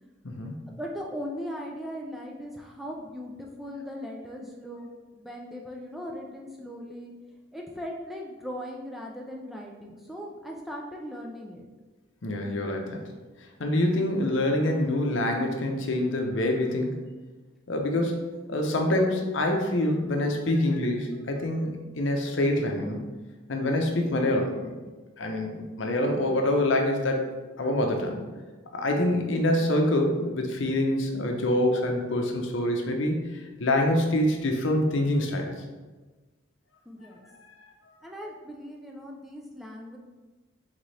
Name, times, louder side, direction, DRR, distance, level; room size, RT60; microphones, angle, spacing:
voice 1, 0.7-7.1 7.5-11.7 36.9-37.3 38.0-40.0, equal, ahead, -1 dB, 0.3 m, -39 dB
voice 2, 12.2-13.0 13.6-17.0 17.7-18.2 18.5-21.7 22.0-23.1 23.5-24.7 25.2-27.2 27.6-28.2 28.7-33.2 33.6-35.5, left 1 dB, 70° left, 2 dB, 0.6 m, -25 dB
3.9 x 3.6 x 3.2 m, 1.3 s
head